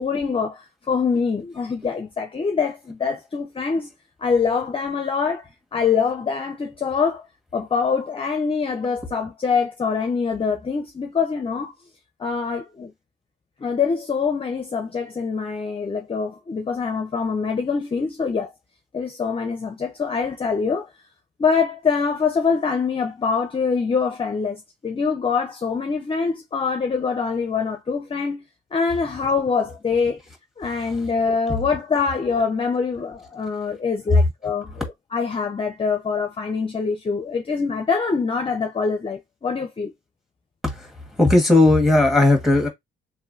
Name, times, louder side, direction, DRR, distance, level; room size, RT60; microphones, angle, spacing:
voice 1, 0.0-3.9 4.2-7.3 7.5-11.7 12.2-12.9 13.6-18.5 18.9-20.9 21.4-28.4 28.7-30.2 30.6-39.9, left 5 dB, 25° left, 0.6 m, -24 dB
voice 2, 41.2-42.7, left 2 dB, ahead, 1.5 m, -16 dB
3.1 x 2.7 x 2.6 m
cardioid pair, 90°, 20 cm